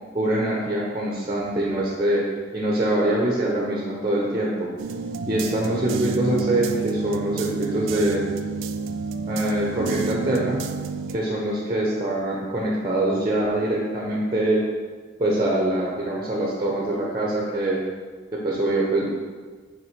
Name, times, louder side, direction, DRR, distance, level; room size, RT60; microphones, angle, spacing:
voice 1, 0.1-2.3 2.5-4.7 5.3-8.2 9.2-10.6 11.1-14.6 15.2-17.8 18.3-19.1, right 1 dB, 25° right, -3 dB, 0.8 m, -24 dB
sound 1, 4.8-11.2, right 4 dB, 75° right, 0.3 m, -29 dB
5.8 x 3.5 x 5.1 m, 1.5 s
head